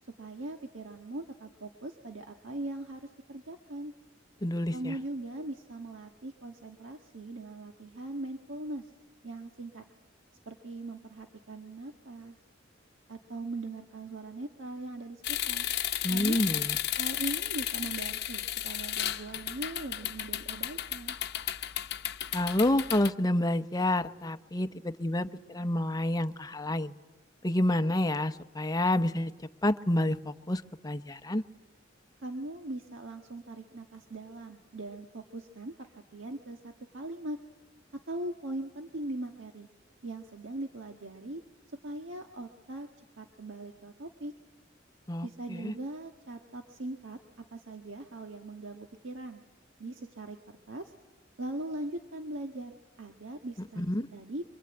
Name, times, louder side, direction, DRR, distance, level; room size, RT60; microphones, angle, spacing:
voice 1, 0.2-3.9 4.7-8.9 9.2-9.8 10.4-12.3 13.1-15.6 16.1-16.4 17.0-21.2 32.2-37.4 37.9-39.7 40.0-41.4 41.8-42.9 43.2-44.3 45.2-47.2 47.5-49.4 49.8-50.9 51.4-53.8 54.1-54.4, right 2 dB, 75° right, 3 dB, 1.6 m, -40 dB
voice 2, 4.4-4.9 16.0-16.8 22.3-26.9 27.4-29.3 29.6-31.4 45.1-45.7 53.8-54.1, left 1 dB, 20° left, 10 dB, 0.9 m, -29 dB
sound 1, 15.2-23.1, left 12 dB, 60° left, 0.9 m, -33 dB
25.0 x 25.0 x 8.9 m, 1.1 s
head